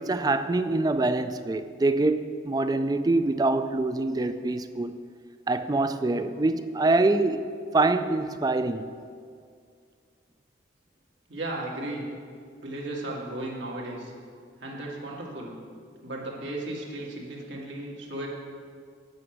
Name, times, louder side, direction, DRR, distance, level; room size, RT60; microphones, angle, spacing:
voice 1, 0.0-4.9 5.5-7.5 7.7-8.9, right 2 dB, 20° right, 0.3 m, -25 dB
voice 2, 11.3-12.0 12.6-14.1 14.6-15.5 16.0-18.3, right 1 dB, 80° right, 2.0 m, -35 dB
9.1 x 5.9 x 7.8 m
head